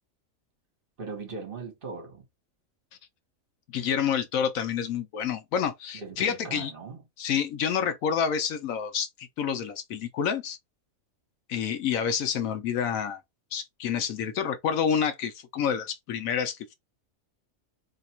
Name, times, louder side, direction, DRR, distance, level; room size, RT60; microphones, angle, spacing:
voice 1, 1.0-2.2 5.9-7.0, right 4 dB, 40° right, 1.3 m, -39 dB
voice 2, 3.7-6.7 7.2-10.6 11.5-13.2 13.5-16.8, left 7 dB, 80° left, 1.1 m, -28 dB
2.9 x 2.4 x 4.2 m
omnidirectional pair, 1.4 m